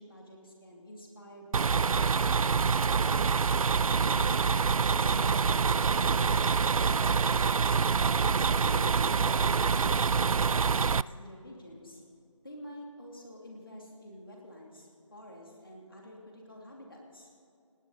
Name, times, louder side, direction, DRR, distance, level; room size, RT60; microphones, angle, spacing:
voice 1, 0.0-3.5 4.0-7.6 8.4-12.0 12.4-17.3, left 1 dB, 40° left, -1 dB, 2.8 m, -48 dB
sound 1, 1.5-11.0, right 5 dB, 90° right, 0.4 m, -26 dB
18.5 x 18.5 x 4.1 m, 2.4 s
figure-of-eight pair, 180°, 17 cm